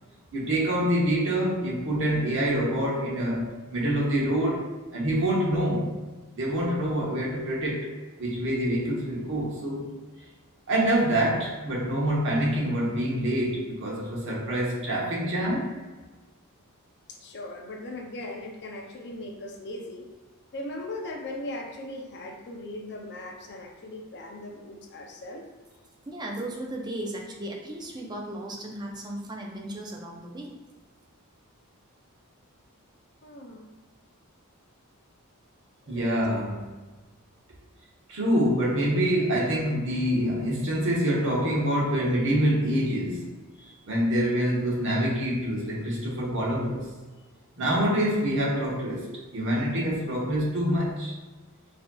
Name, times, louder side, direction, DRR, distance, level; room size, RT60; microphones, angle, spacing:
voice 1, 0.3-5.9 6.3-7.9 8.2-9.9 10.7-15.7 35.9-36.7 38.1-43.3 43.9-46.9 47.6-51.2, equal, 60° right, -3 dB, 1.0 m, -26 dB
voice 2, 17.1-20.1 20.5-25.5 33.2-33.7 35.9-36.2 43.5-43.8, left 1 dB, 50° left, 2 dB, 0.5 m, -39 dB
voice 3, 26.1-30.6, right 1 dB, 20° right, 0 dB, 0.5 m, -36 dB
4.9 x 2.7 x 2.3 m, 1.3 s
head